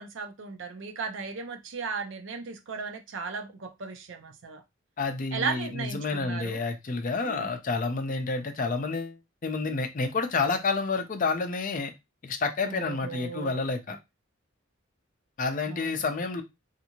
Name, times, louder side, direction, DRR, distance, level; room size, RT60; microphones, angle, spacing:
voice 1, 0.0-4.6 5.3-6.6 7.2-7.5 12.7-13.7 15.7-16.0, right 5 dB, 65° right, 0.5 m, -36 dB
voice 2, 5.0-11.9 12.2-14.0 15.4-16.4, left 4 dB, 40° left, 0.5 m, -29 dB
2.6 x 2.5 x 2.9 m
head